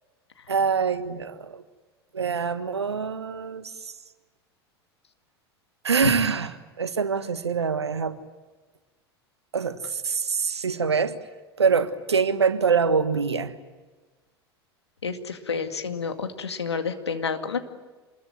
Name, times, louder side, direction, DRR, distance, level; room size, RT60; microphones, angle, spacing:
voice 1, 0.5-1.6 2.1-3.7 5.8-6.5 6.8-8.2 9.5-11.2 11.6-13.5, right 5 dB, 85° right, 11 dB, 1.5 m, -24 dB
voice 2, 15.0-17.6, left 5 dB, 85° left, 7 dB, 2.1 m, -30 dB
27.0 x 21.5 x 9.3 m, 1.3 s
figure-of-eight pair, 80°, 14 cm